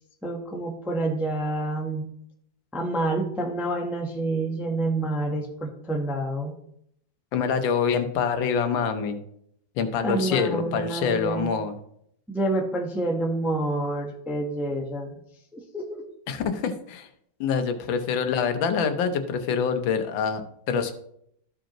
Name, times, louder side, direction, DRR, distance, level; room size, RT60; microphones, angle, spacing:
voice 1, 0.2-2.0 2.7-6.5 10.0-11.5 12.3-15.2 15.5-16.0, right 2 dB, ahead, 1 dB, 0.5 m, -28 dB
voice 2, 7.3-9.2 9.8-11.7 16.3-17.1 17.4-20.4 20.7-20.9, left 6 dB, 85° left, 9 dB, 1.6 m, -25 dB
13.5 x 5.1 x 2.9 m, 0.72 s
omnidirectional pair, 2.1 m